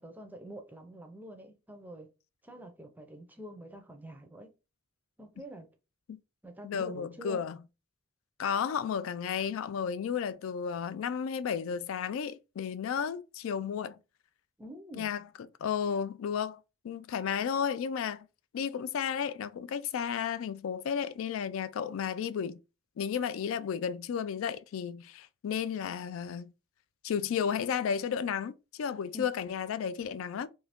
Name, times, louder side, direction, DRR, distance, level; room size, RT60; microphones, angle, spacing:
voice 1, 0.0-2.1 2.4-4.5 5.2-5.7 6.4-7.5 14.6-15.1 29.1-29.3, right 1 dB, 10° right, 0.5 m, -46 dB
voice 2, 6.6-7.6 8.4-14.0 14.9-15.2 15.6-16.6 16.8-18.3 18.5-22.6 23.0-26.5 27.0-30.5, left 7 dB, 75° left, 0.3 m, -33 dB
2.7 x 2.6 x 3.3 m
head